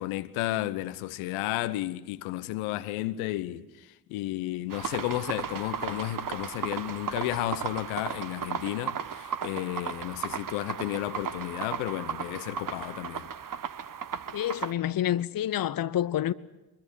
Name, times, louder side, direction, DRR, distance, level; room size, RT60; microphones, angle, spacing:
voice 1, 0.0-13.3, left 15 dB, 75° left, 1.1 m, -33 dB
sound 1, 4.7-14.7, right 7 dB, 40° right, 1.2 m, -35 dB
voice 2, 14.3-16.3, left 12 dB, 45° left, 0.9 m, -28 dB
24.0 x 22.0 x 8.3 m
hypercardioid pair, 40°, 50 cm